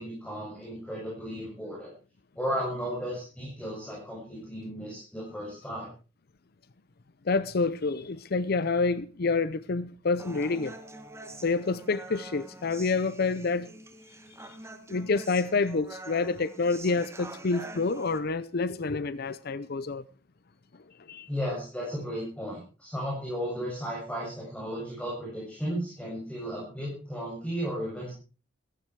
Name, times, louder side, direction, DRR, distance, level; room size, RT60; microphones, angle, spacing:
voice 1, 0.0-1.9 2.4-5.9 21.3-28.1, equal, 5° left, 7.6 m, -34 dB
voice 2, 7.3-10.7 11.4-13.7 14.4-14.5 14.9-20.0 21.1-21.3, left 4 dB, 55° left, 0.6 m, -28 dB
Human voice, 10.2-18.2, right 2 dB, 15° right, 2.1 m, -46 dB
16.0 x 15.5 x 4.7 m
head